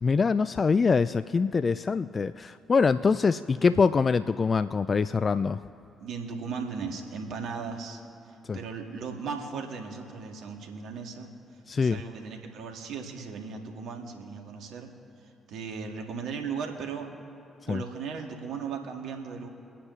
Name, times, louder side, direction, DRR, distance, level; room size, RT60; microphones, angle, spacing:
voice 1, 0.0-5.6 8.5-8.6 11.7-12.0 17.7-17.8, left 5 dB, 45° left, 14 dB, 0.4 m, -24 dB
voice 2, 6.0-8.0 8.5-11.3 11.8-14.9 15.5-17.1 17.7-19.5, right 5 dB, 70° right, 3 dB, 1.9 m, -37 dB
25.0 x 9.9 x 3.2 m, 2.6 s
hypercardioid pair, 45°, 0 cm